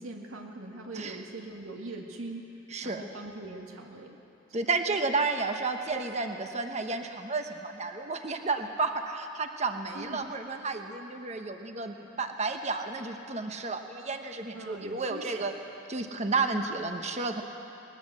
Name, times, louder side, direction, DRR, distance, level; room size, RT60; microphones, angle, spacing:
voice 1, 0.0-2.4 2.8-4.2 4.6-4.7 9.9-10.3 14.5-15.5, right 2 dB, 85° right, 1 dB, 1.9 m, -42 dB
voice 2, 2.7-3.1 4.5-15.5 15.9-17.4, right 3 dB, 35° right, 5 dB, 1.1 m, -32 dB
20.5 x 20.0 x 7.6 m, 2.9 s
head